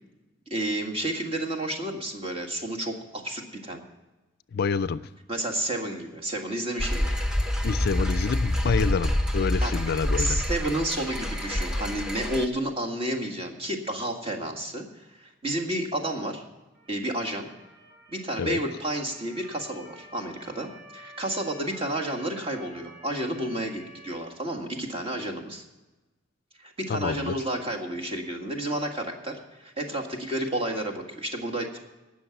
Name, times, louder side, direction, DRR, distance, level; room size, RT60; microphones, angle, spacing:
voice 1, 0.5-3.8 5.3-7.2 9.6-9.7 10.2-16.4 16.9-17.5 18.1-25.6 26.6-31.8, right 1 dB, 30° right, 1 dB, 1.8 m, -31 dB
voice 2, 4.5-5.1 7.6-10.4 18.4-18.6 26.9-27.4, left 5 dB, 55° left, 15 dB, 0.4 m, -27 dB
sound 1, 6.8-12.5, left 1 dB, 5° right, 0.9 m, -27 dB
Motor vehicle (road) / Siren, 16.7-24.2, right 1 dB, 45° right, 3.5 m, -50 dB
18.0 x 6.5 x 5.9 m, 1.1 s
head